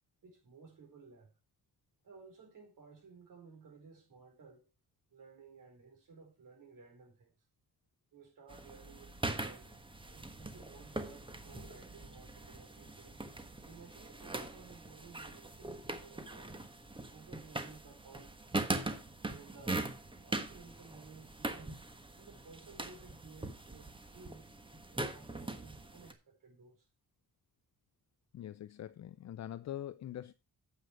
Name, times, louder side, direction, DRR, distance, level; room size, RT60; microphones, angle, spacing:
voice 1, 0.2-1.4 2.0-4.7 5.1-7.3 8.1-9.7 10.1-13.2 13.6-16.6 17.1-18.7 19.2-21.8 22.2-24.5 24.9-26.9, right 5 dB, 65° right, 4.7 m, -57 dB
sound 1, 8.5-26.1, right 2 dB, 15° right, 1.3 m, -42 dB
voice 2, 28.3-30.3, left 11 dB, 50° left, 0.5 m, -43 dB
9.2 x 7.9 x 4.7 m
cardioid pair, 125°, 35 cm